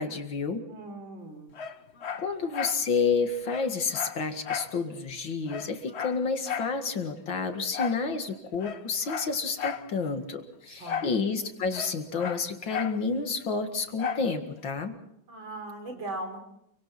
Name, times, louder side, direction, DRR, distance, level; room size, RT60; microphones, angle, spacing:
voice 1, 0.0-0.6 2.2-15.0, left 4 dB, 80° left, 6 dB, 2.7 m, -30 dB
voice 2, 0.7-1.5 10.7-11.1 15.3-16.4, right 2 dB, 80° right, 5 dB, 4.7 m, -39 dB
Dog, 1.5-2.8 3.1-3.2 3.5-4.8 5.1-5.2 5.5-6.8 7.7-8.1 8.5-9.9 10.8-11.2 11.4-13.0 14.0-14.3 14.8-14.9, left 7 dB, 45° left, 1.0 m, -34 dB
29.0 x 24.0 x 4.4 m, 0.75 s
omnidirectional pair, 2.1 m